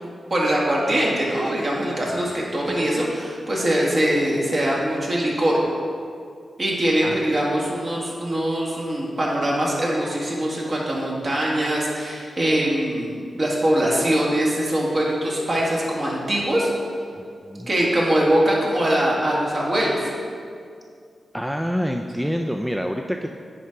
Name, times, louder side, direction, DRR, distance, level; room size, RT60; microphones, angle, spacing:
voice 1, 0.0-5.6 6.6-16.7 17.7-20.1, right 1 dB, 45° right, -4 dB, 1.8 m, -22 dB
voice 2, 21.3-23.4, equal, 5° right, 3 dB, 0.3 m, -27 dB
9.9 x 4.6 x 3.7 m, 2.3 s
cardioid pair, 80°, 0 cm